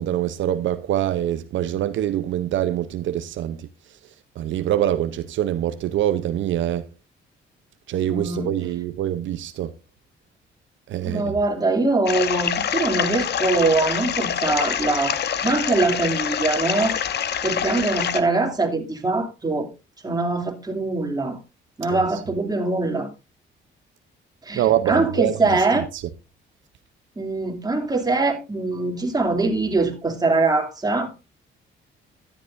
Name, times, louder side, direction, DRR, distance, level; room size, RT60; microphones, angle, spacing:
voice 1, 0.0-3.7 4.4-6.8 7.9-9.7 10.9-11.3 21.9-22.0 24.5-25.3 25.7-25.8, right 12 dB, 75° right, 0.7 m, -24 dB
voice 2, 8.0-8.5 11.0-17.0 17.4-19.7 20.0-21.4 21.8-23.1 24.4-25.9 27.2-31.2, right 3 dB, 20° right, 2.6 m, -23 dB
sound 1, 12.1-18.2, left 8 dB, 55° left, 1.0 m, -25 dB
12.5 x 10.5 x 2.6 m
cardioid pair, 90°, 20 cm